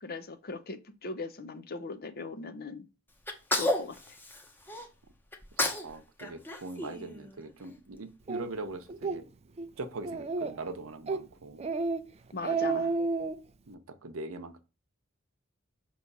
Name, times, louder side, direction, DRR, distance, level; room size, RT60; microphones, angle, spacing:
voice 1, 0.0-2.9 3.5-4.2 12.3-12.9, left 3 dB, 50° left, 0.7 m, -39 dB
Sneeze, 3.3-4.9 5.3-5.9 6.2-7.6, left 1 dB, 10° left, 0.9 m, -32 dB
voice 2, 5.8-9.3 9.8-11.6 13.7-14.6, right 2 dB, 75° right, 0.8 m, -41 dB
Speech, 8.3-8.4 8.9-9.2 9.6-9.7 10.0-10.6 11.1-11.2 11.6-12.0 12.3-13.3, right 4 dB, 30° right, 0.4 m, -30 dB
5.9 x 3.1 x 5.4 m
head